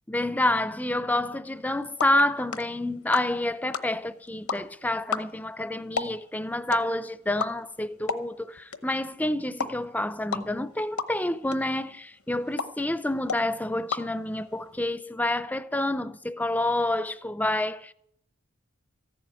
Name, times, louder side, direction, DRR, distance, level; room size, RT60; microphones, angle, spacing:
voice 1, 0.1-17.9, left 1 dB, 5° left, 0.4 m, -28 dB
sound 1, 1.5-14.8, left 5 dB, 80° left, 0.9 m, -37 dB
14.5 x 7.6 x 9.5 m
head